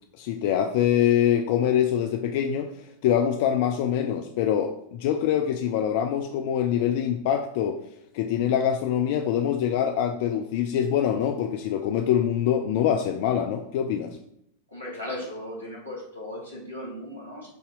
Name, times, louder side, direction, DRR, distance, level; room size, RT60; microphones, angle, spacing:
voice 1, 0.2-2.7 3.0-7.8 8.1-14.2, left 9 dB, 50° left, 5 dB, 0.4 m, -24 dB
voice 2, 14.7-17.5, left 1 dB, 90° left, -5 dB, 2.2 m, -37 dB
6.9 x 2.8 x 5.2 m, 0.72 s
figure-of-eight pair, 90°, 0 cm